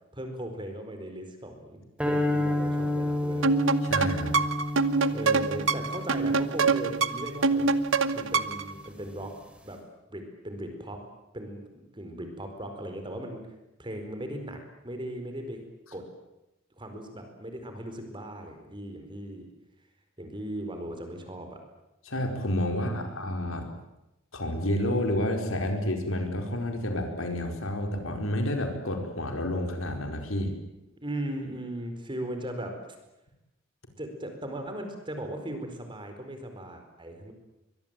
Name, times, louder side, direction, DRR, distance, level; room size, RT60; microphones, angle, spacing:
voice 1, 0.1-3.5 5.1-7.7 8.1-9.3 9.6-9.8 10.1-11.0 11.3-13.4 13.8-14.6 14.8-15.6 15.9-16.0 16.8-19.5 20.2-21.6 22.7-23.2 31.0-32.8 34.0-37.3, right 1 dB, 25° right, 6 dB, 4.6 m, -38 dB
sound 1, 2.0-8.3, left 1 dB, 5° right, 3.5 m, -31 dB
sound 2, 3.4-8.7, right 4 dB, 65° right, 1.1 m, -25 dB
voice 2, 3.8-4.4 22.0-23.7 24.3-30.5, left 1 dB, 85° left, 4 dB, 4.8 m, -30 dB
23.0 x 22.0 x 9.1 m, 0.93 s
head